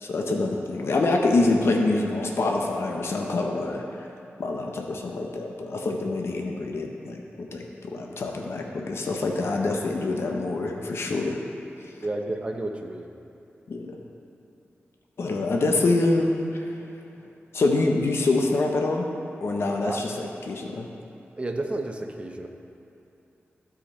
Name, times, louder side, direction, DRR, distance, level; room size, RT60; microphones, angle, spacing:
voice 1, 0.0-3.8 4.4-11.4 13.7-14.0 15.2-16.7 17.5-19.1 19.4-20.9, left 2 dB, 65° left, 1 dB, 0.8 m, -25 dB
voice 2, 12.0-13.1 19.8-20.0 21.4-22.5, right 2 dB, 25° right, 3 dB, 0.7 m, -31 dB
13.0 x 5.1 x 4.3 m, 2.9 s
wide cardioid pair, 105°, 5 cm